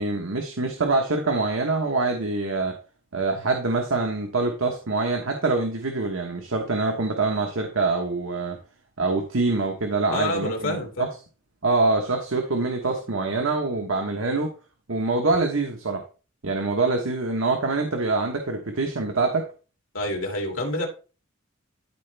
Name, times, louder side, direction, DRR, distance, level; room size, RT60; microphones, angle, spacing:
voice 1, 0.0-2.7 3.1-8.6 9.0-11.1 11.6-14.5 14.9-16.0 16.4-19.4, right 3 dB, 80° right, 3 dB, 1.2 m, -25 dB
voice 2, 10.1-11.1 19.9-20.9, left 1 dB, 90° left, 1 dB, 2.7 m, -27 dB
13.0 x 4.4 x 3.4 m, 0.35 s
head